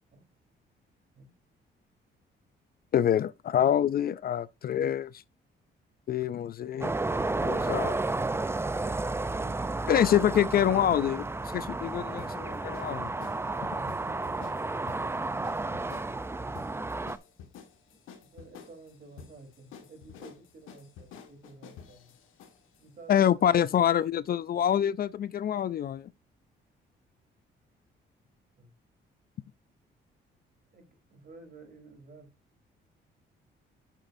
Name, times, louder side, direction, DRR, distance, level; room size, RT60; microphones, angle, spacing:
voice 1, 2.9-5.2 6.1-6.9 7.4-8.0 9.9-11.3 11.5-13.1 23.1-26.1, left 10 dB, 50° left, 0.4 m, -26 dB
sound 1, 6.8-17.2, right 2 dB, 10° right, 0.5 m, -32 dB
sound 2, 10.8-22.8, left 7 dB, 85° left, 1.7 m, -51 dB
voice 2, 13.2-15.2 17.9-22.1 22.8-23.6 28.6-28.7 30.7-32.3, right 3 dB, 50° right, 3.8 m, -52 dB
8.8 x 7.4 x 2.7 m
cardioid pair, 90°, 20 cm